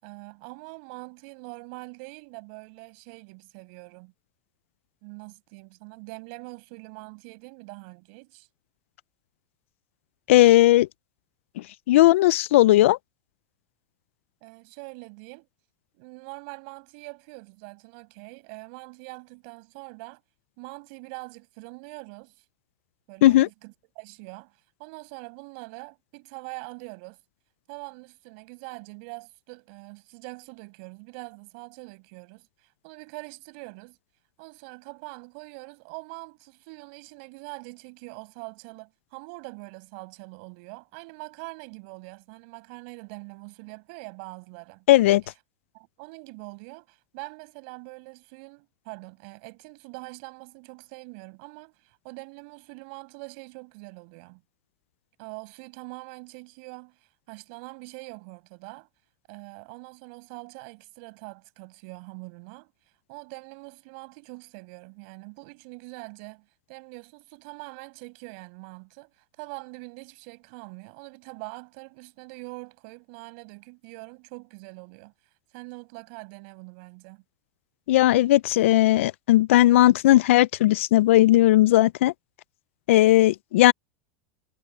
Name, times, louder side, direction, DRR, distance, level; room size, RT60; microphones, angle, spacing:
voice 1, 0.0-4.1 5.0-8.5 14.4-15.5 15.9-20.2 20.6-22.4 23.1-24.5 24.8-27.2 27.7-34.0 34.4-44.9 45.7-54.4 55.2-58.9 59.3-62.7 63.1-75.1 75.5-77.2, right 32 dB, 55° right, 5.7 m, -43 dB
voice 2, 10.3-10.9 11.9-13.0 23.2-23.5 44.9-45.2 77.9-82.1 82.9-83.7, left 15 dB, 80° left, 0.4 m, -17 dB
supercardioid pair, 145°, 7 cm